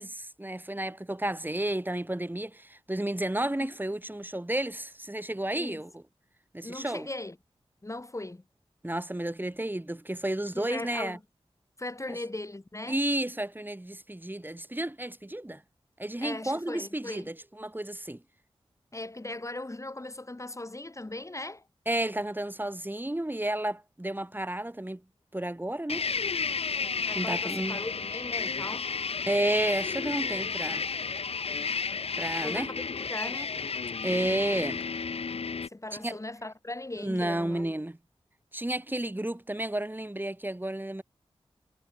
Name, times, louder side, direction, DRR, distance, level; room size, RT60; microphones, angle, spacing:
voice 1, 0.0-6.0 6.5-7.1 8.8-11.2 12.1-12.2 12.9-15.6 16.0-18.2 21.9-25.0 25.3-26.0 27.1-27.8 29.3-30.8 32.2-32.7 34.0-34.8 36.0-36.2 37.0-38.0 38.5-41.0, right 1 dB, 20° right, 6.4 m, -32 dB
voice 2, 6.6-7.4 7.8-8.4 10.6-11.2 11.8-13.0 16.2-17.3 18.9-21.6 27.0-28.9 32.4-33.6 35.7-37.6, left 2 dB, 30° left, 3.5 m, -39 dB
sound 1, 25.9-35.7, left 5 dB, 80° left, 1.2 m, -32 dB
wide cardioid pair, 55°, 10 cm